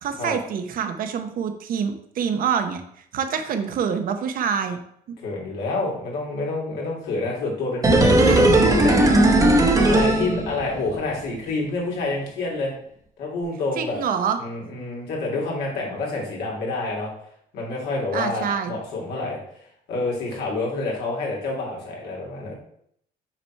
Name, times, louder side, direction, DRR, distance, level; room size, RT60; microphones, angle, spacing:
voice 1, 0.0-2.8 3.1-4.8 8.2-8.7 13.8-14.4 18.1-18.8, right 7 dB, 60° right, 8 dB, 0.9 m, -26 dB
voice 2, 5.2-9.4 9.9-12.7 13.2-14.0 14.4-17.1 17.5-19.4 19.9-22.5, left 2 dB, 80° left, -3 dB, 2.3 m, -28 dB
sound 1, 7.8-11.0 11.2-11.3, right 1 dB, 20° right, 1.0 m, -17 dB
6.0 x 4.1 x 4.5 m, 0.69 s
cardioid pair, 110°, 17 cm